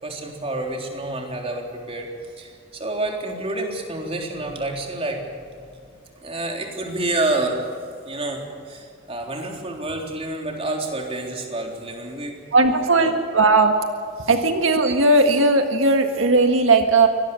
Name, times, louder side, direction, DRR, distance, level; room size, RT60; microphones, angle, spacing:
voice 1, 0.0-2.1 2.4-5.3 6.2-7.7 8.1-13.1, right 2 dB, 30° right, 1 dB, 3.7 m, -28 dB
voice 2, 12.5-13.8 14.3-17.1, right 3 dB, 90° right, 5 dB, 1.8 m, -17 dB
24.0 x 19.0 x 7.1 m, 2.3 s
head